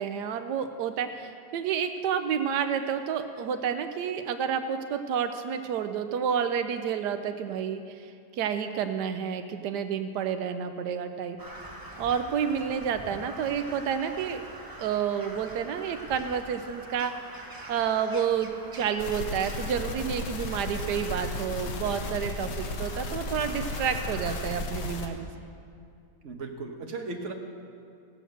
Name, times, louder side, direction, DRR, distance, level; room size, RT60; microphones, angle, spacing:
voice 1, 0.0-11.4 12.0-14.4 14.8-17.1 17.7-25.5, right 7 dB, 90° right, 8 dB, 1.2 m, -30 dB
Crow, 11.4-24.5, right 1 dB, 15° right, 0.9 m, -45 dB
sound 1, 19.0-25.1, left 2 dB, 85° left, 1.7 m, -34 dB
voice 2, 26.2-27.3, right 3 dB, 50° right, 2 dB, 1.4 m, -36 dB
16.5 x 7.7 x 6.5 m, 2.4 s
omnidirectional pair, 1.8 m